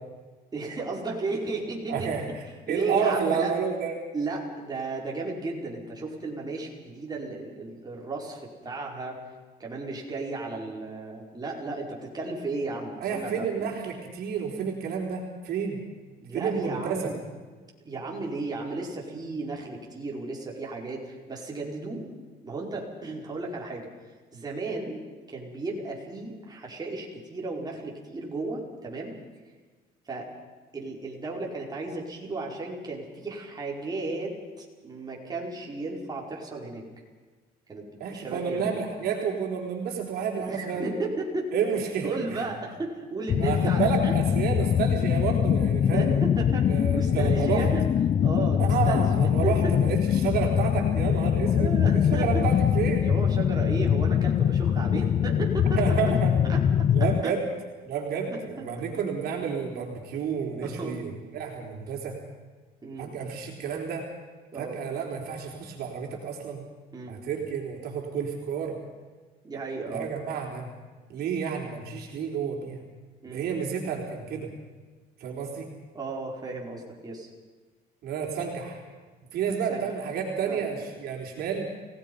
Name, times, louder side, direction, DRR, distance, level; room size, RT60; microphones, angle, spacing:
voice 1, 0.5-2.1 2.7-3.5 4.1-9.2 9.6-13.7 16.2-17.2 17.8-22.1 22.4-23.9 24.3-29.2 30.0-30.3 30.7-36.8 37.7-38.8 40.3-41.5 42.0-44.2 45.9-47.8 48.2-49.7 51.4-52.4 53.0-56.1 56.4-56.6 57.0-57.4 58.3-58.7 60.6-61.0 62.8-63.1 64.5-64.8 66.9-67.2 69.4-70.1 73.2-73.5 75.9-77.3 79.7-79.9 80.4-80.7, right 3 dB, 25° right, -2 dB, 5.1 m, -34 dB
voice 2, 1.9-2.2 2.7-3.9 13.0-15.8 16.3-17.1 38.0-40.9 41.5-42.4 43.4-46.1 46.7-47.7 48.6-53.1 55.8-56.3 56.9-57.4 57.8-62.2 63.0-64.1 64.5-66.6 67.1-68.8 69.9-70.7 71.1-72.8 73.2-74.5 75.2-75.7 78.0-78.8 79.3-81.7, right 7 dB, 70° right, 0 dB, 4.1 m, -30 dB
sound 1, 43.3-57.2, left 9 dB, 40° left, 0.6 m, -23 dB
29.0 x 18.0 x 5.6 m, 1.4 s
cardioid pair, 110°, 17 cm